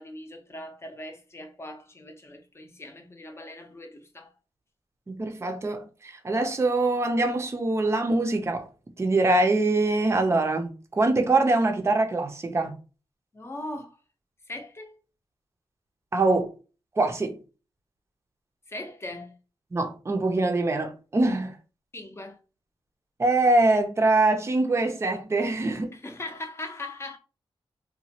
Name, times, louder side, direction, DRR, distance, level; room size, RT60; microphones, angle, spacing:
voice 1, 0.0-4.3 13.3-14.0 14.5-15.0 18.7-19.3 21.9-22.4 25.9-27.2, left 2 dB, 25° left, 0.6 m, -40 dB
voice 2, 5.1-8.7 9.0-12.7 16.1-16.5 17.0-17.4 19.7-21.5 23.2-25.9, right 2 dB, 25° right, 0.5 m, -24 dB
2.9 x 2.2 x 2.7 m
wide cardioid pair, 120°, 10 cm